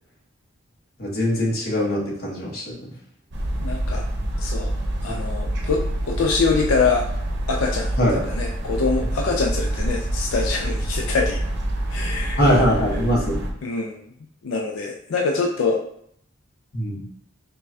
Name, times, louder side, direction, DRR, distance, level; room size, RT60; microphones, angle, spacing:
voice 1, 1.0-2.8 5.1-5.2 8.0-8.2 12.4-13.4 16.7-17.0, equal, 50° left, -4 dB, 1.1 m, -21 dB
sound 1, 3.3-13.5, right 1 dB, 60° right, 0.7 m, -26 dB
voice 2, 3.6-4.0 4.4-4.7 5.0-7.1 7.5-8.0 8.2-11.4 11.9-12.4 13.6-14.0 14.4-15.8, left 4 dB, 90° left, 1 dB, 0.4 m, -24 dB
5.3 x 2.2 x 2.7 m, 0.68 s
head